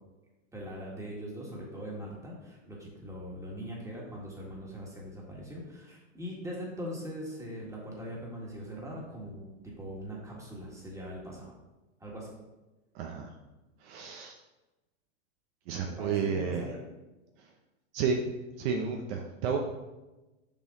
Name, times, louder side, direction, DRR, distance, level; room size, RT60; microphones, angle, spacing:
voice 1, 0.5-11.5 12.0-12.3 15.9-16.8, equal, 5° right, -3 dB, 1.8 m, -41 dB
voice 2, 12.9-13.3 13.8-14.3 15.7-16.7 17.4-17.5 17.9-18.2 18.6-19.6, right 6 dB, 50° right, 3 dB, 0.8 m, -31 dB
7.0 x 5.5 x 3.8 m, 1.1 s
hypercardioid pair, 130°, 40 cm